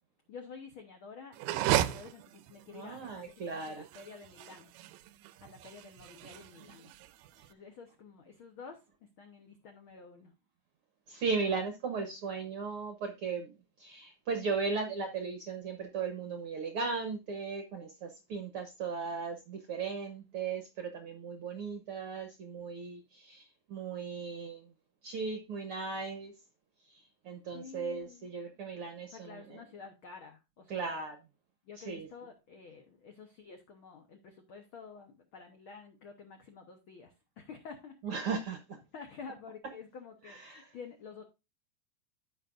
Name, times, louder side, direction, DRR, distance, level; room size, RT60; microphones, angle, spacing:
voice 1, 0.3-4.7 5.4-6.9 7.5-8.8 9.2-10.3 27.5-28.3 29.1-31.0 31.6-38.0 38.9-41.2, left 5 dB, 75° left, 4 dB, 1.2 m, -50 dB
sound 1, 1.3-7.5, right 13 dB, 90° right, 2.3 m, -35 dB
voice 2, 2.7-3.8 11.1-13.5 13.8-24.7 25.0-26.3 26.9-29.6 30.7-31.2 31.8-32.1 38.0-38.6 40.2-40.7, right 5 dB, 65° right, 5 dB, 1.4 m, -37 dB
14.5 x 5.3 x 2.5 m, 0.26 s
omnidirectional pair, 3.8 m